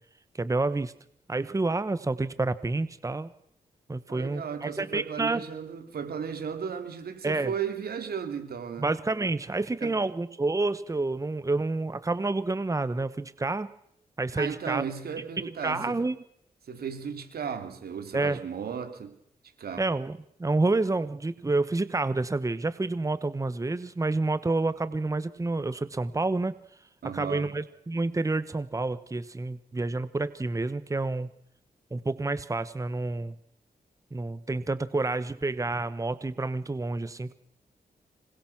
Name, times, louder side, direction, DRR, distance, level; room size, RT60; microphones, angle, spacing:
voice 1, 0.3-0.9 1.3-3.3 3.9-5.4 7.2-7.5 8.8-13.7 14.2-14.8 15.4-16.2 18.1-18.4 19.8-26.6 27.1-31.3 31.9-33.4 34.1-37.3, right 2 dB, 20° right, 1.2 m, -29 dB
voice 2, 4.1-8.9 9.8-9.9 14.3-16.0 16.7-19.1 19.6-19.9 27.0-27.5, right 7 dB, 90° right, 3.4 m, -35 dB
26.5 x 21.5 x 6.1 m
wide cardioid pair, 105°, 15 cm